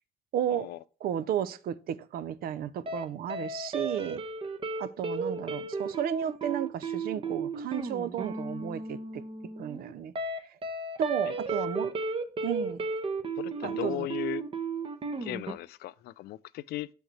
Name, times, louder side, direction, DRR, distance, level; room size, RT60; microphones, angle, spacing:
voice 1, 0.3-0.7 1.0-4.2 4.8-9.2 9.6-10.1 10.5-10.6 11.0-11.9 12.4-12.8 13.6-14.1, right 10 dB, 60° right, 0.6 m, -33 dB
sound 1, 2.9-3.0 3.3-15.5, right 3 dB, 30° right, 0.9 m, -34 dB
voice 2, 13.4-14.4 15.2-16.9, left 16 dB, 70° left, 0.4 m, -37 dB
6.8 x 6.4 x 3.2 m
cardioid pair, 110°, 17 cm